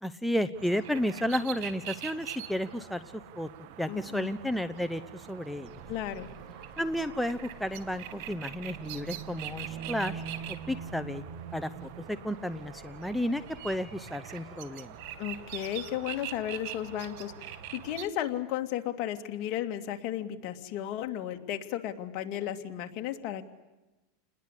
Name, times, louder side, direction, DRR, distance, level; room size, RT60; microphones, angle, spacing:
voice 1, 0.0-3.0 3.4-3.5 3.8-5.7 6.8-11.2 11.5-11.7 12.1-14.9, left 1 dB, ahead, 9 dB, 0.9 m, -32 dB
sound 1, 0.5-18.0, right 10 dB, 65° right, 2.2 m, -43 dB
voice 2, 3.9-4.3 5.9-6.3 15.2-23.4, left 11 dB, 50° left, 5 dB, 2.6 m, -34 dB
sound 2, 5.7-18.4, right 3 dB, 15° right, 5.8 m, -53 dB
30.0 x 21.0 x 8.4 m, 1.1 s
supercardioid pair, 135°, 0 cm